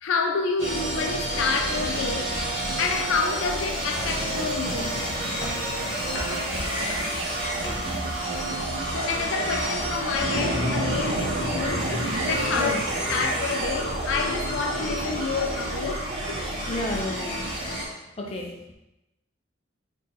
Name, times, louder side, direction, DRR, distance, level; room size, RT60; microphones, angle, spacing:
voice 1, 0.0-2.3 2.8-5.0 8.9-12.8 13.1-16.4, left 4 dB, 80° left, 0.4 m, -28 dB
sound 1, 0.6-17.9, right 1 dB, 80° right, 1.6 m, -28 dB
sound 2, 3.9-8.4 8.8-8.9, left 1 dB, 60° left, 1.2 m, -38 dB
voice 2, 16.7-17.5 18.2-18.5, left 1 dB, 30° left, 0.5 m, -31 dB
4.5 x 3.7 x 2.9 m
head